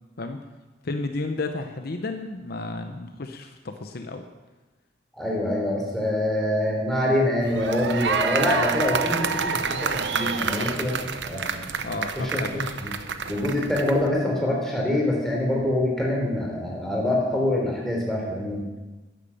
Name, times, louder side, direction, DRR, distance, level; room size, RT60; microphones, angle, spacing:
voice 1, 0.8-4.3 10.4-10.7 11.8-12.7, left 2 dB, 60° left, 6 dB, 0.8 m, -32 dB
voice 2, 5.2-10.9 11.2-11.5 12.2-12.9 13.3-18.7, left 1 dB, ahead, -3 dB, 3.4 m, -25 dB
sound 1, 7.4-14.1, right 5 dB, 75° right, 0.8 m, -28 dB
10.5 x 10.0 x 7.1 m, 1.2 s
head